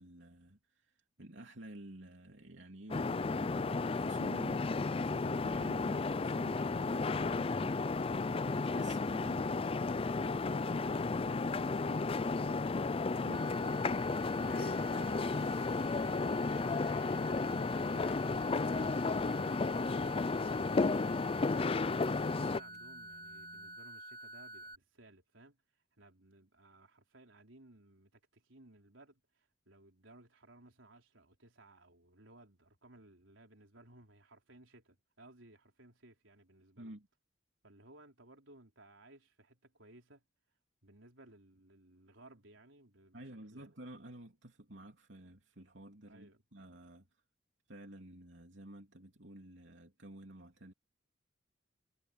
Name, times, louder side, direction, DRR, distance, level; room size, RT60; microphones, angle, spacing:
voice 1, 0.0-7.8 8.3-10.2 13.2-13.6 36.8-37.1 43.1-47.1 47.7-50.7, right 1 dB, 70° right, 3.3 m, -52 dB
sound 1, 2.9-22.6, left 3 dB, 30° left, 0.4 m, -33 dB
voice 2, 10.1-12.8 13.3-15.4 16.8-25.6 26.0-36.9 37.6-40.2 40.8-43.2 43.5-43.7 46.1-46.4, right 2 dB, 85° right, 4.1 m, -59 dB
sound 2, 13.3-24.8, right 1 dB, 50° right, 2.6 m, -49 dB
sound 3, 13.5-23.8, left 2 dB, 60° left, 3.7 m, -54 dB
head